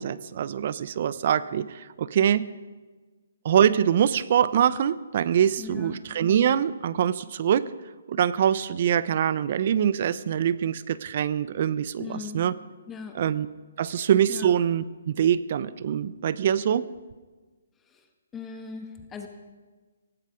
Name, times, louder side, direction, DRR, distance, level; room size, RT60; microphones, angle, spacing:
voice 1, 0.0-2.5 3.4-7.7 8.1-12.5 13.1-13.5 13.8-16.9, right 9 dB, 45° right, 17 dB, 0.7 m, -24 dB
voice 2, 5.6-6.0 12.0-12.4 12.9-13.2 13.8-13.9 14.3-14.5 17.9-18.0 18.3-19.3, left 5 dB, 10° left, 5 dB, 1.4 m, -39 dB
17.5 x 15.5 x 5.1 m, 1.3 s
hypercardioid pair, 150°, 0 cm